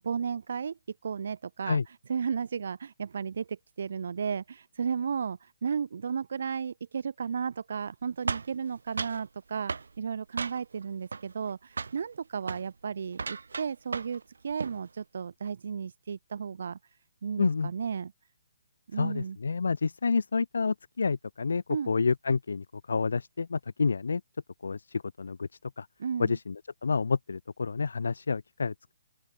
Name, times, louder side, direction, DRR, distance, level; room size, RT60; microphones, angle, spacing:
voice 1, 0.0-16.8 17.2-18.1 18.9-19.4 21.7-21.9 26.0-26.4, right 6 dB, 60° right, 3.8 m, -34 dB
sound 1, 8.3-9.2 9.7-9.9 10.4-10.8 11.1-11.5 11.8-12.0 12.4-12.7 13.1-14.2 14.5-14.8, right 4 dB, 85° right, 1.1 m, -35 dB
voice 2, 17.4-17.7 18.9-24.2 24.6-25.5 25.8-25.9 26.2-28.9, left 4 dB, 80° left, 3.8 m, -29 dB
open air
hypercardioid pair, 160°, 0 cm